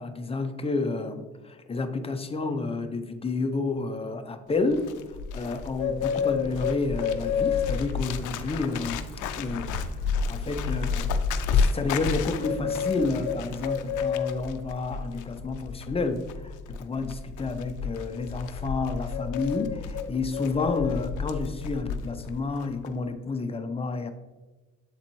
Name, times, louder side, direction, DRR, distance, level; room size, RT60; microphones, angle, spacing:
voice 1, 0.0-4.9 5.3-9.0 9.4-9.8 10.3-11.1 11.5-24.1, left 3 dB, 20° left, 7 dB, 0.6 m, -30 dB
Bird, 4.5-22.4 22.6-22.9, left 6 dB, 80° left, 0.5 m, -30 dB
sound 1, 5.2-15.5, right 5 dB, 30° right, 0.7 m, -43 dB
7.6 x 4.1 x 3.0 m, 1.3 s
cardioid pair, 90°, 30 cm